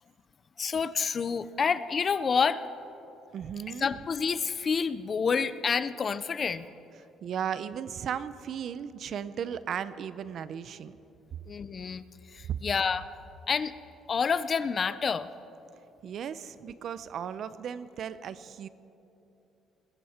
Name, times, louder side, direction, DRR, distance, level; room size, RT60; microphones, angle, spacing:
voice 1, 0.6-2.6 3.8-6.7 11.5-12.0 12.3-13.1 13.5-13.7 14.1-15.3, left 6 dB, 30° left, 15 dB, 0.4 m, -28 dB
voice 2, 3.3-3.9 7.2-11.0 12.5-12.6 16.0-18.7, right 8 dB, 45° right, 15 dB, 0.5 m, -36 dB
21.0 x 15.0 x 4.3 m, 2.9 s
cardioid pair, 165°, 0 cm